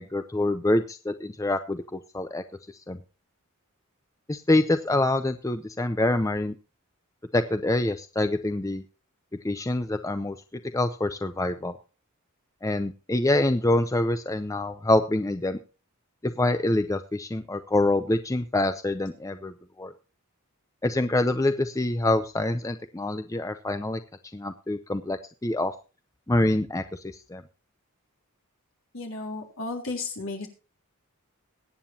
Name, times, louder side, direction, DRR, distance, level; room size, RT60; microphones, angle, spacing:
voice 1, 0.0-2.4 2.9-3.0 4.3-6.5 7.3-8.8 9.4-10.4 10.7-11.7 12.6-15.6 16.2-19.9 20.8-24.0 24.3-25.7 26.3-27.0 27.3-27.4, left 2 dB, 15° left, 10 dB, 0.5 m, -26 dB
voice 2, 28.9-30.5, left 3 dB, 60° left, 1 dB, 3.6 m, -33 dB
22.0 x 9.1 x 2.8 m, 0.33 s
head